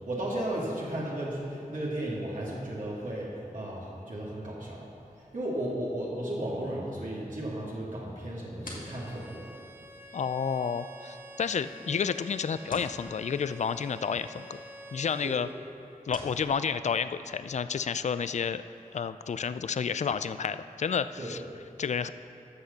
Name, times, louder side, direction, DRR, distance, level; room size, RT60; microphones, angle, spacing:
voice 1, 0.0-4.8 5.2-9.5 15.2-15.3 21.2-21.3, right 1 dB, 65° right, -6 dB, 2.4 m, -34 dB
sound 1, 8.1-16.4, left 1 dB, 70° left, 2.0 m, -51 dB
Bowed string instrument, 8.6-15.5, right 1 dB, 15° right, 1.0 m, -48 dB
voice 2, 10.1-14.6 14.9-15.5 16.1-18.6 18.9-21.4 21.8-22.1, left 6 dB, 55° left, 13 dB, 0.4 m, -30 dB
9.7 x 6.4 x 7.0 m, 2.9 s
cardioid pair, 45°, 15 cm